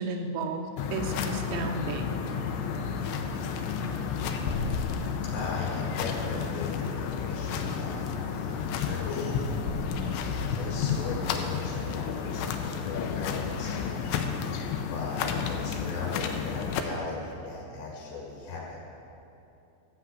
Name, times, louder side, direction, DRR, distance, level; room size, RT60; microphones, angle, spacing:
voice 1, 0.0-2.3, right 3 dB, 90° right, 5 dB, 3.2 m, -33 dB
sound 1, 0.8-16.8, left 6 dB, 90° left, 3.0 m, -31 dB
voice 2, 5.3-6.9 7.2-9.5 10.6-14.0 14.8-18.8, left 4 dB, 70° left, -4 dB, 4.0 m, -38 dB
13.0 x 5.8 x 8.3 m, 2.8 s
omnidirectional pair, 5.1 m